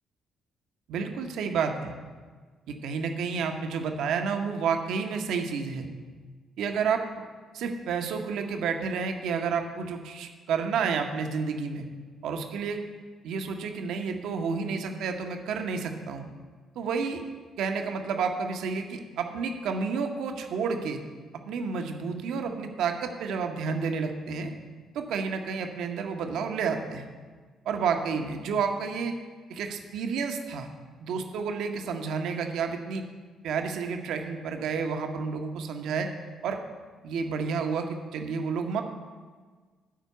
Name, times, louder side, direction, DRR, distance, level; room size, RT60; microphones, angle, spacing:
voice 1, 0.9-1.9 2.7-5.9 6.6-7.0 7.5-11.8 12.2-12.8 13.2-16.3 16.8-17.2 17.6-21.0 21.5-24.5 24.9-27.1 27.7-29.1 29.5-30.7 31.0-33.0 33.4-36.1 36.4-36.6 37.0-38.8, right 5 dB, 65° right, 4 dB, 0.9 m, -30 dB
11.5 x 4.4 x 8.0 m, 1.5 s
hypercardioid pair, 45°, 0 cm